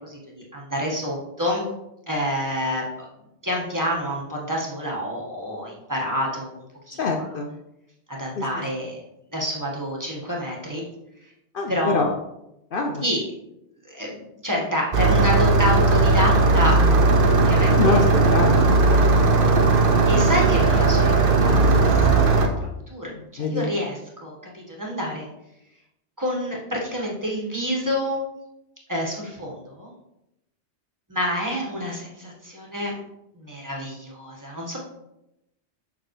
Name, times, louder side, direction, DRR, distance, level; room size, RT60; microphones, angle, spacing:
voice 1, 0.0-1.6 2.1-3.1 3.4-7.2 8.1-9.0 9.3-10.8 11.7-12.1 13.0-13.2 13.9-16.9 17.5-18.0 20.1-21.2 21.4-22.5 22.9-25.3 26.2-28.2 28.9-29.9 31.1-33.0 33.3-34.8, equal, 15° right, -3 dB, 1.5 m, -28 dB
voice 2, 7.0-7.5 8.4-8.5 11.5-12.1 12.7-13.0 17.7-19.2 23.1-23.7, left 4 dB, 60° left, 2 dB, 0.7 m, -25 dB
Engine starting, 14.9-22.5, right 3 dB, 55° right, 1.0 m, -17 dB
7.1 x 6.0 x 3.2 m, 0.88 s
omnidirectional pair, 1.1 m